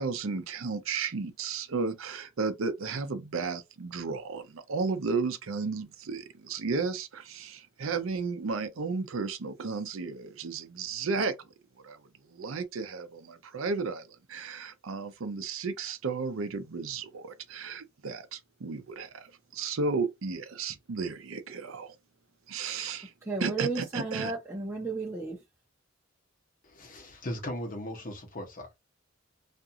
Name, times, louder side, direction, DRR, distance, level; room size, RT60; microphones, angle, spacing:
voice 1, 0.0-11.4 11.8-12.0 12.3-21.9 22.5-23.1 23.4-24.3, right 4 dB, 80° right, 0.6 m, -33 dB
voice 2, 23.3-25.4, right 3 dB, 10° right, 0.6 m, -33 dB
voice 3, 26.6-28.8, left 1 dB, 45° left, 0.9 m, -38 dB
2.5 x 2.4 x 2.7 m
head